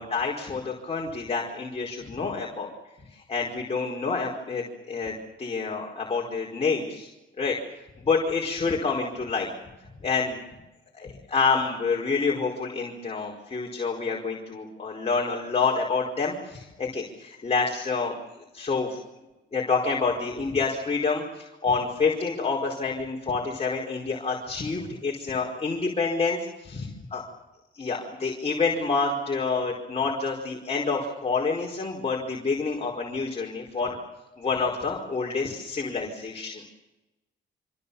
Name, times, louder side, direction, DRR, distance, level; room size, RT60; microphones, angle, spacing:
voice 1, 0.0-2.7 3.1-7.1 7.4-7.6 8.0-9.5 10.0-10.4 10.9-18.2 18.5-19.0 19.5-26.4 26.7-27.2 27.7-34.0 34.4-36.5, left 4 dB, 30° left, -1 dB, 4.9 m, -28 dB
26.0 x 25.5 x 7.1 m, 1.0 s
cardioid pair, 90°, 20 cm